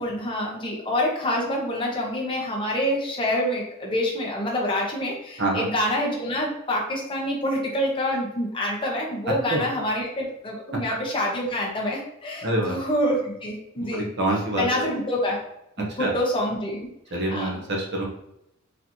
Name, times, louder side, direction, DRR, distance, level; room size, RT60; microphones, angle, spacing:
voice 1, 0.0-14.1 14.6-15.4 15.8-16.8 17.3-17.5, left 1 dB, 25° left, -2 dB, 1.0 m, -26 dB
voice 2, 12.4-12.8 13.8-14.9 16.0-16.1 17.1-18.0, right 1 dB, 50° right, -1 dB, 0.8 m, -26 dB
4.1 x 3.1 x 2.8 m, 0.81 s
head